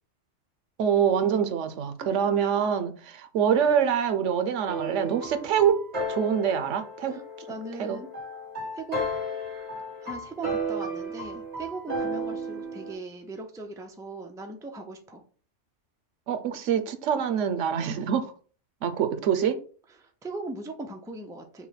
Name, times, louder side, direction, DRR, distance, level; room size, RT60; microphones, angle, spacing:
voice 1, 0.8-7.2 7.8-8.0 16.3-18.3 18.8-19.6, right 8 dB, 90° right, 1.0 m, -25 dB
sound 1, 4.7-12.9, right 1 dB, 35° right, 1.5 m, -34 dB
voice 2, 7.5-8.1 8.7-9.0 10.0-15.2 20.0-21.7, right 3 dB, 5° right, 0.4 m, -39 dB
5.7 x 2.2 x 4.0 m
omnidirectional pair, 1.2 m